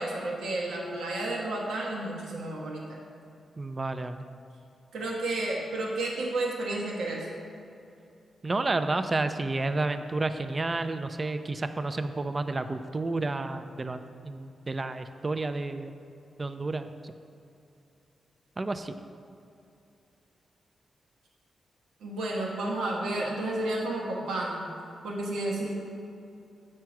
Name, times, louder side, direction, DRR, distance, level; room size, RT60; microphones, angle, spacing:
voice 1, 0.0-3.0 4.9-7.3 22.0-24.7 25.0-25.8, right 2 dB, 90° right, -2 dB, 1.1 m, -31 dB
voice 2, 3.6-4.2 8.4-16.0 16.4-17.1 18.6-18.9, right 2 dB, 35° right, 9 dB, 0.5 m, -31 dB
7.5 x 4.6 x 5.9 m, 2.7 s
cardioid pair, 65°, 0 cm